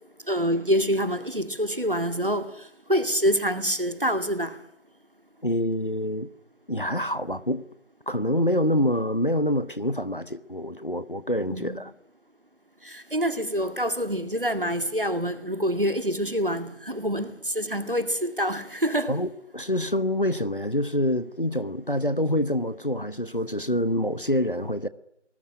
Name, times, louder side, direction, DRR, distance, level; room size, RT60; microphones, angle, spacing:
voice 1, 0.3-2.5 2.9-4.6 11.5-11.8 12.9-19.2, equal, 50° right, 2.2 m, -26 dB
voice 2, 5.4-6.3 6.7-7.6 8.1-11.9 19.1-24.9, equal, 45° left, 1.1 m, -26 dB
25.0 x 20.5 x 9.9 m
figure-of-eight pair, 180°, 35 cm